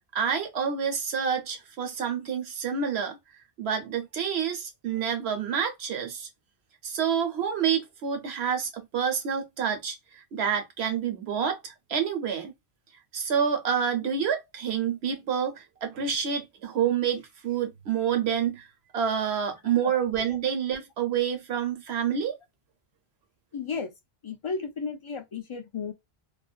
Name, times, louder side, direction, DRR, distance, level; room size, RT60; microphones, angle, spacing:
voice 1, 0.1-3.2 3.6-6.3 6.8-12.5 13.1-18.7 18.9-22.3, right 7 dB, 85° right, 1.0 m, -28 dB
voice 2, 23.5-23.9 24.2-25.9, left 5 dB, 55° left, 0.3 m, -34 dB
2.5 x 2.2 x 2.3 m
omnidirectional pair, 1.0 m